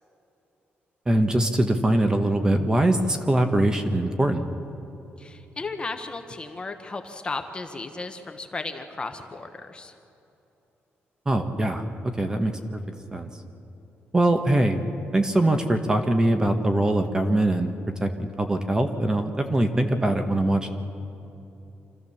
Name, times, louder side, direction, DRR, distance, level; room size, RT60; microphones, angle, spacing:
voice 1, 1.1-4.5 11.2-12.6 13.1-13.3 14.1-14.8 15.1-17.7 18.0-20.7, right 1 dB, 15° right, 6 dB, 1.2 m, -22 dB
voice 2, 5.2-9.9, left 3 dB, 20° left, 6 dB, 1.1 m, -35 dB
26.5 x 14.5 x 7.1 m, 2.9 s
cardioid pair, 140°, 4 cm